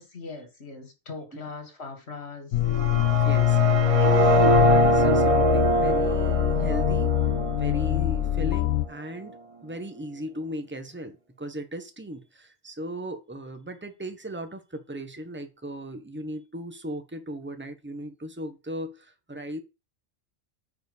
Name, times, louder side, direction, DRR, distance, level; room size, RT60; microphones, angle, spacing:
voice 1, 0.0-2.6 3.9-4.2, left 4 dB, 55° left, 2.4 m, -40 dB
sound 1, 2.5-8.9, left 14 dB, 90° left, 1.1 m, -23 dB
sound 2, 2.6-8.6, right 2 dB, 30° right, 0.8 m, -24 dB
voice 2, 2.8-7.2 7.5-19.6, right 1 dB, 10° right, 1.4 m, -37 dB
8.9 x 4.9 x 7.1 m
omnidirectional pair, 1.3 m